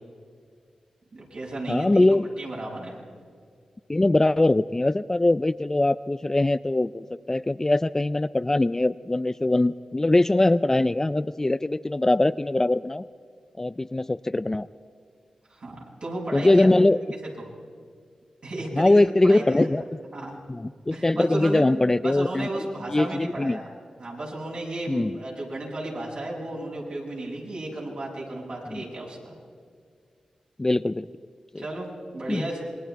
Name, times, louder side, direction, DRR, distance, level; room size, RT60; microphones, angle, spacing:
voice 1, 1.1-3.0 15.5-16.7 18.4-19.7 20.1-20.4 20.9-21.6 22.0-23.7 24.0-29.4 31.6-32.6, right 2 dB, 65° right, -3 dB, 7.1 m, -34 dB
voice 2, 1.7-2.3 3.9-13.0 13.6-14.7 16.3-17.0 18.7-19.8 20.5-22.5 22.9-23.6 24.9-25.2 28.7-28.8 30.6-31.1 31.5-31.6 32.3-32.5, left 2 dB, 20° left, 14 dB, 0.4 m, -22 dB
27.0 x 21.5 x 4.6 m, 2.1 s
cardioid pair, 60°, 2 cm